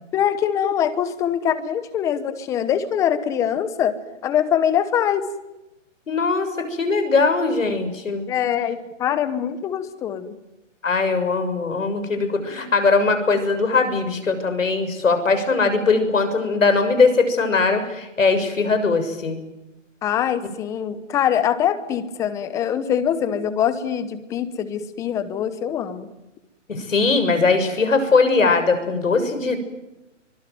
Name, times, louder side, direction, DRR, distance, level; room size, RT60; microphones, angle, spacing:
voice 1, 0.1-4.0 4.2-5.3 8.3-10.4 20.0-26.1, left 9 dB, 10° left, 14 dB, 0.9 m, -23 dB
voice 2, 6.1-8.3 10.8-19.4 26.7-29.6, left 4 dB, 90° left, 8 dB, 6.9 m, -20 dB
24.5 x 24.0 x 9.4 m, 0.97 s
hypercardioid pair, 160°, 38 cm